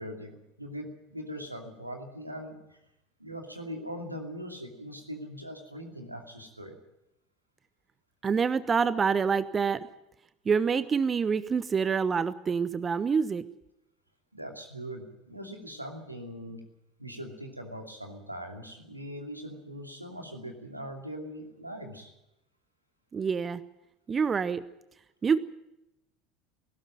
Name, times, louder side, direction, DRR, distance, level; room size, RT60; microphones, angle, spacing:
voice 1, 0.0-2.8 3.2-6.8 14.3-16.6 17.0-22.1, equal, 90° right, 4 dB, 2.5 m, -41 dB
voice 2, 8.2-9.9 10.5-13.4 23.1-23.6 24.1-24.6 25.2-25.4, right 6 dB, 25° right, 16 dB, 0.8 m, -26 dB
18.5 x 16.0 x 9.0 m, 0.87 s
figure-of-eight pair, 70°, 0 cm